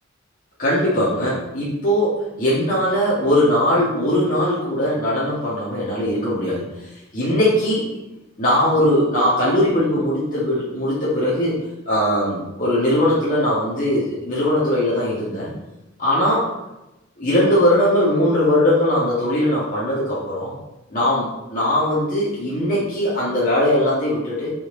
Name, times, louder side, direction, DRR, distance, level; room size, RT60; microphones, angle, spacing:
voice 1, 0.6-7.9 8.4-11.6 11.9-15.5 16.0-16.4 17.2-20.6 20.9-24.5, left 1 dB, 40° left, -9 dB, 1.9 m, -20 dB
8.5 x 4.7 x 3.9 m, 0.97 s
head